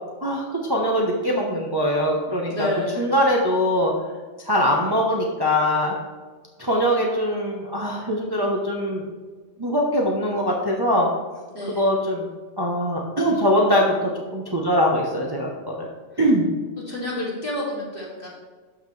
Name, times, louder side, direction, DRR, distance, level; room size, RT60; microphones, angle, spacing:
voice 1, 0.2-2.7 3.0-3.9 4.4-5.9 6.6-9.0 9.6-11.1 11.8-12.3 12.6-15.9 16.2-16.5, equal, 20° right, -2 dB, 0.9 m, -22 dB
voice 2, 2.5-3.1 11.5-11.9 16.1-16.2 16.9-18.3, left 1 dB, 45° left, -6 dB, 3.1 m, -29 dB
12.5 x 6.3 x 3.3 m, 1.4 s
omnidirectional pair, 1.3 m